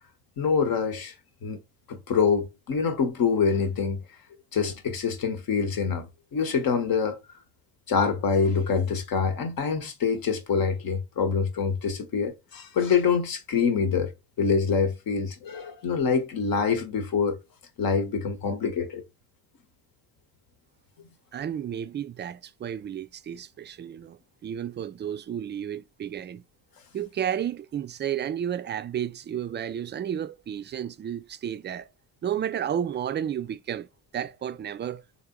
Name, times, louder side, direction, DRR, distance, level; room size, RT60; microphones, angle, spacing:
voice 1, 0.4-1.1 1.4-1.6 1.9-4.0 4.5-7.2 7.9-14.1 14.4-17.4 17.8-19.0, left 5 dB, 55° left, 1.0 m, -25 dB
voice 2, 21.3-26.4 26.9-31.9 32.2-33.9 34.1-35.0, right 9 dB, 30° right, 0.4 m, -32 dB
3.5 x 2.9 x 3.6 m
hypercardioid pair, 40°, 42 cm